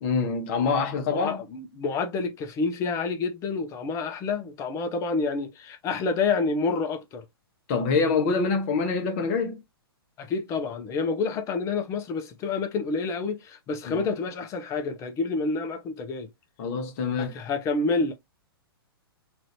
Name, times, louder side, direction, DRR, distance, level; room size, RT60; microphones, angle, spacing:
voice 1, 0.0-1.4 7.7-9.6 13.9-14.1 16.6-17.3, left 4 dB, 40° left, 1.0 m, -25 dB
voice 2, 1.1-7.2 10.2-16.3 17.1-18.1, left 4 dB, 25° left, 0.6 m, -28 dB
3.0 x 2.5 x 3.0 m
figure-of-eight pair, 115°, 13 cm